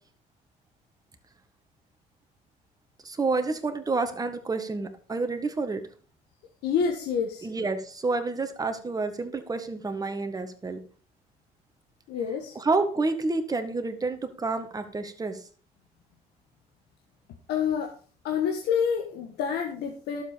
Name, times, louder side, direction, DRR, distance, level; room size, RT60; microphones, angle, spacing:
voice 1, 3.0-5.8 7.4-10.8 12.6-15.4, right 3 dB, 20° right, 8 dB, 1.8 m, -29 dB
voice 2, 6.6-7.5 12.1-12.6 17.5-17.9 18.2-20.2, left 7 dB, 80° left, 2 dB, 1.7 m, -27 dB
12.0 x 7.5 x 5.2 m, 0.41 s
cardioid pair, 110°, 17 cm